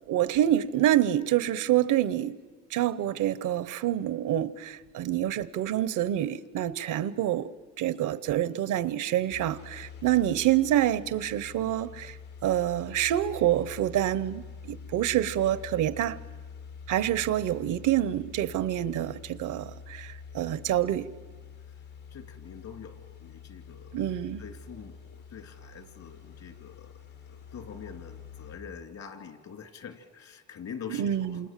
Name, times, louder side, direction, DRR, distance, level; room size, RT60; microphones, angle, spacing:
voice 1, 0.1-2.4 2.7-7.5 7.8-12.2 12.4-16.2 16.9-21.1 23.9-24.4 30.9-31.5, right 12 dB, 85° right, 1.0 m, -27 dB
sound 1, 9.3-28.6, left 6 dB, 85° left, 3.1 m, -46 dB
voice 2, 22.1-24.0 24.4-27.0 27.3-31.5, left 7 dB, 65° left, 3.0 m, -45 dB
28.0 x 27.5 x 7.5 m
cardioid pair, 90°, 30 cm